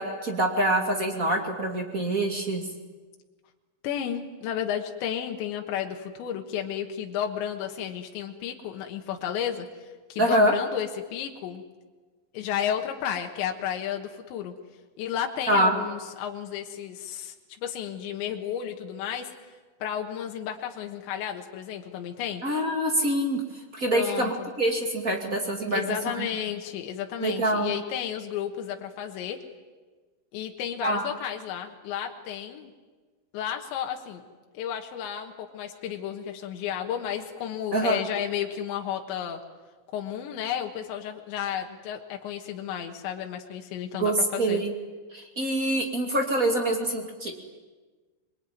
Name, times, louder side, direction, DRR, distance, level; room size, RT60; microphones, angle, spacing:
voice 1, 0.0-2.6 10.2-10.5 15.5-15.7 22.4-23.4 23.7-26.3 27.2-27.7 30.8-31.1 37.7-38.0 44.0-44.7 45.1-47.3, right 1 dB, 25° right, 3 dB, 1.9 m, -25 dB
voice 2, 3.8-9.7 10.1-11.6 12.3-14.5 15.0-17.4 17.6-19.3 19.8-22.4 23.9-24.5 25.7-29.4 30.3-32.7 33.3-34.2 34.6-39.4 39.9-44.6, left 9 dB, 85° left, 3 dB, 3.8 m, -32 dB
25.5 x 22.5 x 9.4 m, 1.3 s
omnidirectional pair, 5.1 m